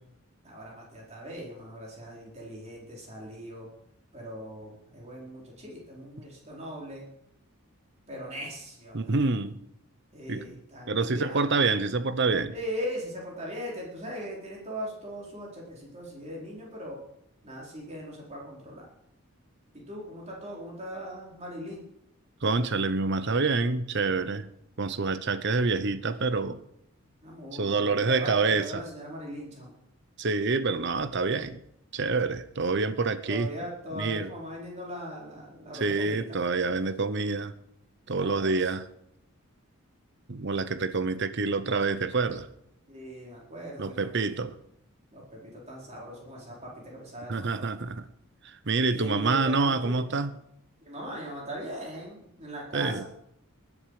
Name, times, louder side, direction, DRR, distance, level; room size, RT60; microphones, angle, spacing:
voice 1, 0.4-3.7 4.1-7.1 8.1-9.3 10.1-11.6 12.5-17.0 17.4-18.9 19.7-21.8 27.2-29.7 33.2-36.4 38.2-38.7 42.9-44.3 45.1-47.7 48.9-50.1 50.8-53.1, equal, 30° right, 4.6 m, -40 dB
voice 2, 8.9-9.6 10.3-10.5 10.9-12.5 22.4-24.5 24.8-26.6 27.5-28.8 30.2-31.6 31.9-33.5 33.9-34.3 35.8-37.5 38.1-38.9 40.3-42.5 43.8-44.6 47.3-48.1 48.4-50.4 52.7-53.0, right 3 dB, 55° right, 0.8 m, -27 dB
19.5 x 11.0 x 4.9 m
head